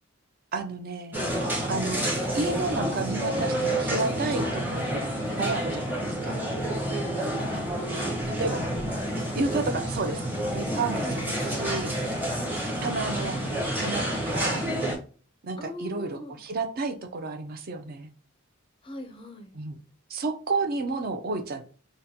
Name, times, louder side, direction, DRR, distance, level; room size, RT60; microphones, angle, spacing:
voice 1, 0.5-1.2 1.7-2.0 2.3-5.0 5.4-6.4 7.2-7.7 8.4-8.6 9.3-10.2 10.5-11.9 12.8-13.4 13.8-14.6 15.4-18.1 19.5-19.8 20.1-21.6, right 3 dB, 45° right, 6 dB, 0.5 m, -31 dB
sound 1, 1.1-15.0, right 1 dB, 10° right, 0.8 m, -29 dB
voice 2, 7.3-8.1 8.4-9.5 11.0-11.5 15.6-16.4 18.8-19.6, left 1 dB, 25° left, 6 dB, 0.4 m, -42 dB
3.8 x 2.1 x 2.7 m, 0.40 s
head